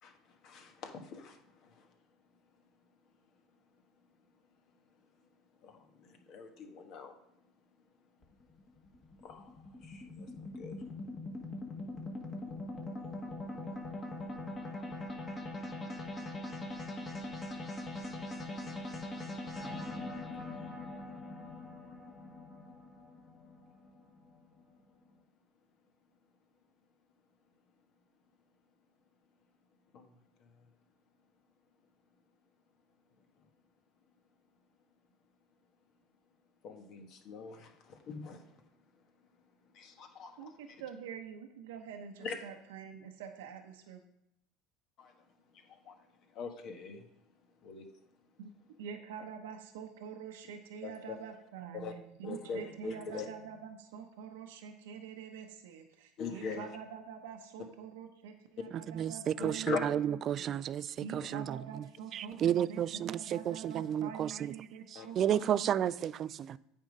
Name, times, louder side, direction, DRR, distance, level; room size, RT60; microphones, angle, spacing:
voice 1, 0.0-1.9 5.6-7.1 9.2-10.8 14.6-14.7 29.9-30.1 30.4-30.5 36.6-38.6 39.7-40.8 42.2-42.3 45.0-45.3 45.6-46.1 46.3-47.1 47.6-47.9 50.8-51.2 51.7-51.9 52.2-53.3 56.2-56.7 59.4-59.8 61.1-61.3 64.9-65.1 65.3-65.5, left 5 dB, 50° left, 1.4 m, -43 dB
sound 1, 8.2-24.6, left 2 dB, 25° left, 1.5 m, -42 dB
voice 2, 40.4-44.0 48.4-48.5 48.8-59.9 60.4-60.6 61.0-66.1, right 7 dB, 85° right, 0.8 m, -46 dB
voice 3, 58.9-61.8 62.1-64.5 64.9-66.6, right 10 dB, 40° right, 0.3 m, -32 dB
8.8 x 3.7 x 5.3 m
supercardioid pair, 110°, 0 cm